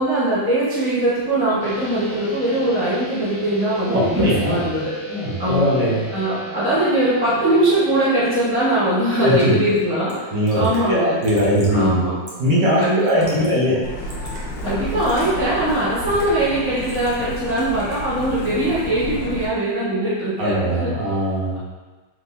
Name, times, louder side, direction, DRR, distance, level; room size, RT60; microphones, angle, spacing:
voice 1, 0.0-4.9 5.4-5.7 6.1-10.1 10.6-11.2 11.7-12.1 12.8-13.8 14.6-20.9, right 1 dB, 10° left, -11 dB, 0.8 m, -21 dB
sound 1, 1.6-11.5, right 2 dB, 55° right, 1.5 m, -38 dB
voice 2, 3.9-4.6 5.1-6.1 9.2-9.5 10.3-12.0 12.4-13.8 20.4-21.6, equal, 75° right, -7 dB, 1.8 m, -20 dB
Raindrop / Drip, 9.7-9.8 10.1-10.2 10.5-10.8 11.2-11.8 12.3-12.5 13.0-13.5 13.8-14.4 15.0-15.3 16.0-16.4 16.8-17.3 17.6-18.0, right 1 dB, 40° right, 0.6 m, -41 dB
Truck, 13.8-19.5, left 1 dB, 85° left, 1.4 m, -31 dB
4.4 x 3.5 x 2.6 m, 1.3 s
omnidirectional pair, 1.9 m